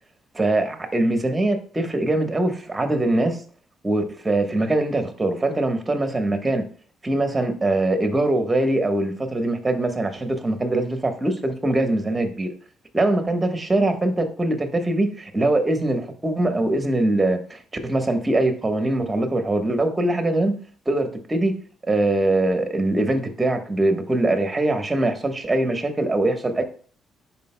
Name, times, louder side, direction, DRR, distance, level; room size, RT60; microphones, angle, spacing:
voice 1, 0.3-3.4 3.8-6.6 7.0-12.5 12.9-20.6 20.9-21.6 21.8-26.6, right 2 dB, 20° right, 6 dB, 1.1 m, -22 dB
10.0 x 4.4 x 2.2 m, 0.43 s
cardioid pair, 90°, 0 cm